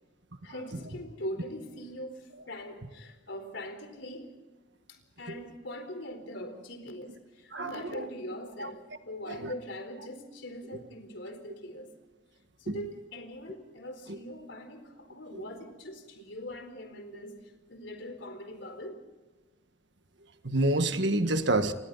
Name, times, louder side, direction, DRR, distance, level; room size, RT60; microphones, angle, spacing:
voice 1, 0.4-4.3 4.9-11.9 12.6-19.0, left 1 dB, 65° left, 4.2 m, -42 dB
voice 2, 7.5-8.0 8.6-8.7 9.4-9.5 12.7-12.8 20.4-21.7, right 2 dB, 60° right, 1.7 m, -27 dB
29.0 x 26.5 x 4.1 m
head